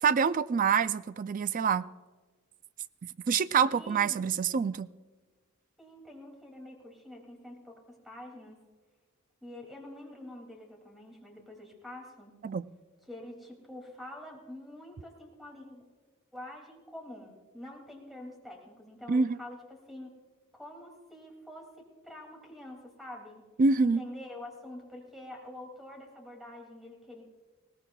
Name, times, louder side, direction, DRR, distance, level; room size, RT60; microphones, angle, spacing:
voice 1, 0.0-1.8 3.3-4.9 12.4-12.7 19.1-19.4 23.6-24.0, right 5 dB, 40° right, 0.3 m, -26 dB
voice 2, 3.6-4.2 5.8-8.6 9.4-12.3 13.1-15.8 16.3-20.1 20.5-23.4 23.8-27.2, left 1 dB, ahead, 2.4 m, -46 dB
20.5 x 17.5 x 2.3 m
head